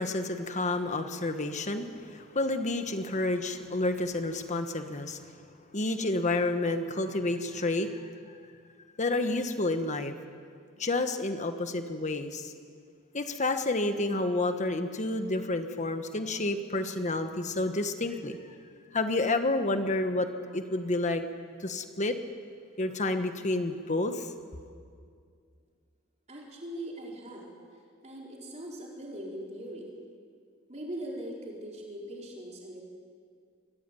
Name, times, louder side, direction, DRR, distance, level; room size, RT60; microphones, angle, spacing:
voice 1, 0.0-5.4 5.7-8.1 9.0-10.1 10.8-12.5 13.1-18.4 18.9-21.2 21.6-22.2 22.8-24.3, left 2 dB, 35° left, 8 dB, 1.4 m, -30 dB
voice 2, 26.3-27.6 28.0-29.9 30.7-32.8, right 1 dB, 35° right, -3 dB, 4.7 m, -40 dB
23.5 x 14.5 x 9.3 m, 2.2 s
head